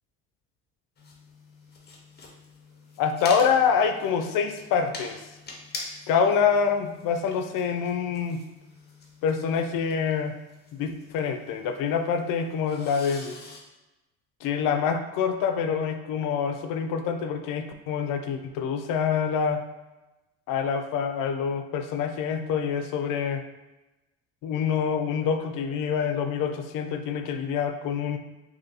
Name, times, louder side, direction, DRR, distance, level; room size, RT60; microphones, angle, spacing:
sound 1, 1.0-13.6, left 3 dB, 30° left, 0.8 m, -45 dB
voice 1, 3.0-5.2 6.1-8.4 9.2-10.4 10.7-13.4 14.4-19.6 20.5-23.4 24.4-28.2, left 6 dB, 70° left, 7 dB, 0.5 m, -26 dB
2.7 x 2.6 x 4.0 m, 1.0 s
cardioid pair, 95°, 33 cm